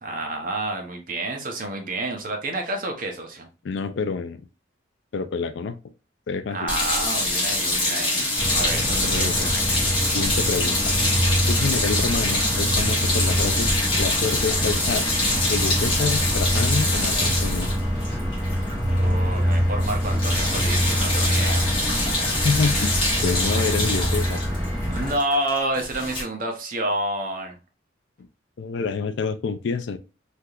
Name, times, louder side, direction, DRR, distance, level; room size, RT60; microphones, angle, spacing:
voice 1, 0.0-3.5 6.5-9.6 18.9-21.6 24.8-27.6, right 1 dB, 45° right, 0.7 m, -29 dB
voice 2, 3.6-4.4 5.1-5.8 6.3-6.7 8.9-9.5 10.1-10.9 11.5-13.7 14.0-15.1 15.5-17.7 22.4-24.4 28.6-30.0, left 5 dB, 65° left, 0.3 m, -27 dB
sound 1, 6.7-19.1 19.3-19.5 19.8-26.2, left 2 dB, 25° left, 1.1 m, -25 dB
sound 2, 8.4-25.2, equal, 20° right, 1.2 m, -25 dB
3.3 x 2.8 x 2.3 m
head